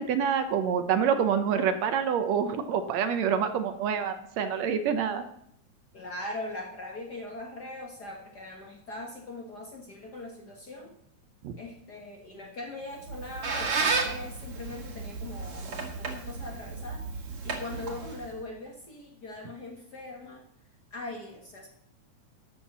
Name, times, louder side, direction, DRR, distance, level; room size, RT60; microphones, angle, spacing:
voice 1, 0.0-5.2 11.4-11.5, right 7 dB, 70° right, 9 dB, 1.9 m, -27 dB
voice 2, 5.9-10.9 11.6-20.4 20.9-21.7, left 2 dB, 45° left, 1 dB, 1.5 m, -41 dB
Squeak, 12.9-18.4, right 4 dB, 50° right, 2.6 m, -33 dB
12.0 x 7.3 x 7.3 m, 0.71 s
omnidirectional pair, 3.4 m